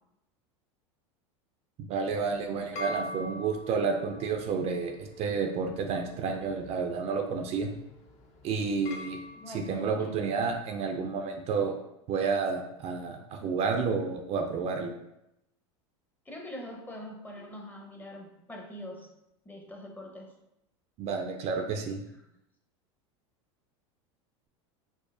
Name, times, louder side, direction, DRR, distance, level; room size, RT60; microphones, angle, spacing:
voice 1, 1.9-7.7 8.4-9.2 9.5-11.7 12.1-14.9 21.0-22.0, right 5 dB, 45° right, 4 dB, 0.4 m, -30 dB
sound 1, 2.2-10.6, left 1 dB, 45° left, 0.7 m, -45 dB
voice 2, 2.7-3.2 9.3-10.2 16.3-19.1 19.4-20.3, left 1 dB, 10° left, 0 dB, 0.7 m, -43 dB
4.7 x 2.0 x 2.6 m, 0.84 s
hypercardioid pair, 95°, 16 cm